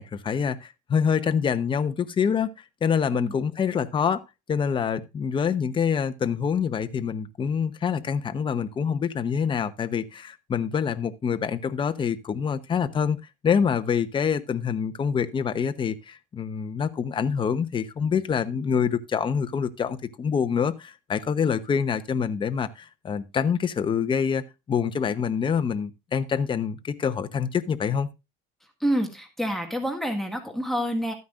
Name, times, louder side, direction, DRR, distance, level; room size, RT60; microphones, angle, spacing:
voice 1, 0.0-2.5 2.8-4.2 4.5-13.2 13.4-28.1, left 7 dB, 25° left, 0.8 m, -26 dB
voice 2, 28.8-31.1, equal, ahead, 1.8 m, -27 dB
13.0 x 9.4 x 2.5 m
cardioid pair, 140°, 20 cm